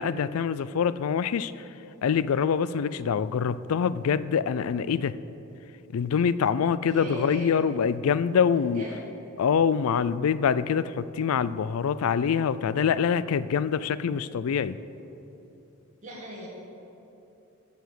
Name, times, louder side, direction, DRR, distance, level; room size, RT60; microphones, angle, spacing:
voice 1, 0.0-1.5 2.0-5.2 5.9-8.8 9.4-14.8, left 7 dB, 75° left, 16 dB, 0.4 m, -25 dB
voice 2, 6.8-7.5 8.5-9.0 16.0-16.5, right 1 dB, 35° right, -6 dB, 1.6 m, -39 dB
13.0 x 5.1 x 7.7 m, 2.9 s
head